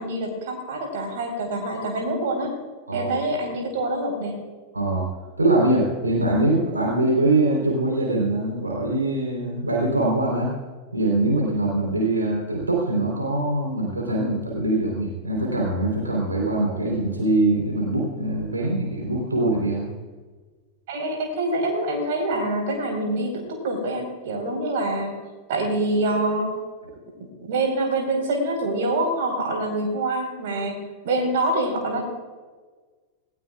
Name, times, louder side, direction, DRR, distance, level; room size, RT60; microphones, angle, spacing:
voice 1, 0.0-2.5 2.9-4.4 20.9-25.2 25.5-26.5 27.4-32.1, right 2 dB, 55° right, 3 dB, 4.5 m, -25 dB
voice 2, 4.7-5.1 5.4-10.5 10.9-19.8, right 2 dB, 80° right, -2 dB, 3.8 m, -23 dB
20.0 x 18.0 x 2.5 m, 1.4 s
figure-of-eight pair, 90°, 0 cm